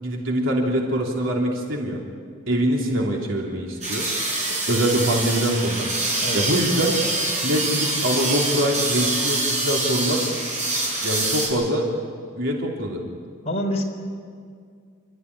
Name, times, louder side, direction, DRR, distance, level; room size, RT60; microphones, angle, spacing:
voice 1, 0.0-2.0 2.5-4.1 4.7-5.9 6.3-7.0 7.4-10.2 11.0-11.9 12.4-13.0, right 1 dB, 80° right, -1 dB, 3.3 m, -23 dB
sound 1, 3.8-11.5, right 2 dB, 35° right, 7.9 m, -25 dB
voice 2, 13.4-13.8, equal, 35° left, -1 dB, 3.7 m, -26 dB
29.0 x 14.5 x 9.8 m, 2.2 s
head